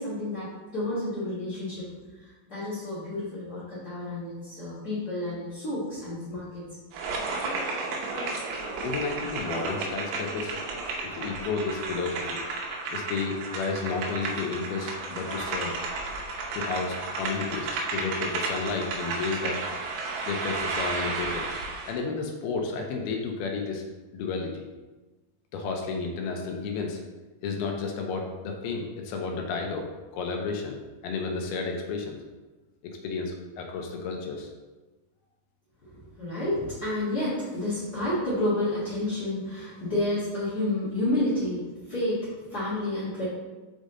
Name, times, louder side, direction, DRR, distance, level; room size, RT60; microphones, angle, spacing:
voice 1, 0.0-6.6 35.8-43.2, left 1 dB, 45° left, -12 dB, 1.2 m, -30 dB
sound 1, 6.9-22.0, right 3 dB, 80° right, 2.9 m, -33 dB
voice 2, 8.8-10.6 11.0-12.4 12.9-15.8 16.5-19.6 20.2-21.6 21.9-23.8 24.1-24.7 25.5-27.0 27.4-29.9 30.1-30.8 31.0-32.2 32.8-34.5, left 4 dB, 80° left, 2 dB, 2.4 m, -32 dB
6.4 x 5.0 x 3.9 m, 1.2 s
omnidirectional pair, 5.0 m